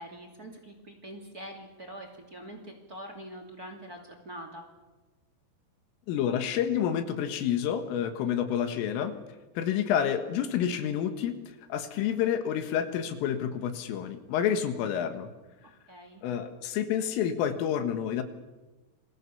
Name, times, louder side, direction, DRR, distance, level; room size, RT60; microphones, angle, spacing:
voice 1, 0.0-4.6 15.9-16.2, right 1 dB, 25° right, 4 dB, 2.1 m, -44 dB
voice 2, 6.1-9.1 9.6-11.4 11.7-15.3 16.2-18.2, left 9 dB, 80° left, 8 dB, 4.1 m, -29 dB
28.5 x 22.0 x 7.0 m, 1.2 s
omnidirectional pair, 5.7 m